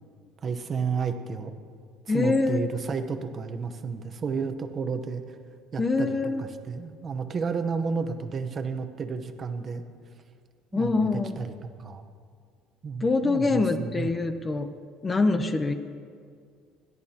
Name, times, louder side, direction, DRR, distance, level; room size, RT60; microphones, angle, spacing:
voice 1, 0.4-1.5 2.1-5.2 5.7-9.8 10.7-11.5 11.8-12.0 12.8-14.1, right 5 dB, 35° right, 7 dB, 0.9 m, -31 dB
voice 2, 2.1-2.7 5.8-6.5 10.7-11.4 13.0-14.7 15.0-15.7, left 3 dB, 20° left, 8 dB, 0.7 m, -25 dB
28.5 x 11.0 x 2.9 m, 2.1 s
cardioid pair, 130°, 0 cm